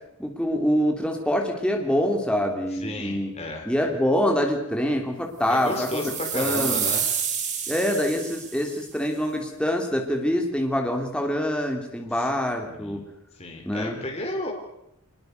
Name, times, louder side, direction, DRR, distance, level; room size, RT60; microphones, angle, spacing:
voice 1, 0.2-3.3 3.6-5.9 6.3-6.8 7.7-13.0 13.6-14.0, equal, 5° left, 2 dB, 3.2 m, -25 dB
voice 2, 2.8-3.6 5.5-7.1 12.2-12.3 12.6-13.0 13.4-14.5, left 1 dB, 30° left, 1 dB, 4.2 m, -33 dB
sound 1, 5.6-8.8, right 8 dB, 35° right, 3.4 m, -29 dB
25.0 x 21.5 x 6.7 m, 0.78 s
head